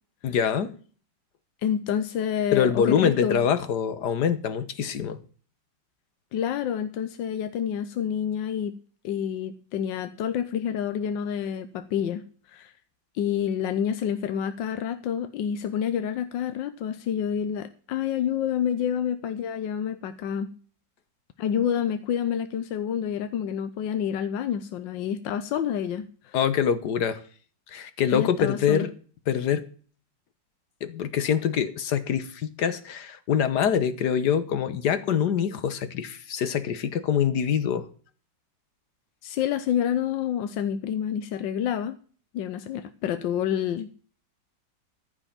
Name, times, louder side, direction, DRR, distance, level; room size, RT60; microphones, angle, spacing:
voice 1, 0.2-0.7 2.5-5.2 26.3-27.2 27.7-28.9 29.3-29.7 30.8-37.9, left 8 dB, 65° left, 12 dB, 1.6 m, -25 dB
voice 2, 1.6-3.4 6.3-8.7 9.0-12.2 12.5-12.7 13.1-20.5 21.4-26.4 28.1-28.9 39.2-41.9 42.3-43.9, left 9 dB, 80° left, 10 dB, 1.5 m, -28 dB
14.0 x 5.7 x 7.3 m, 0.42 s
omnidirectional pair, 2.0 m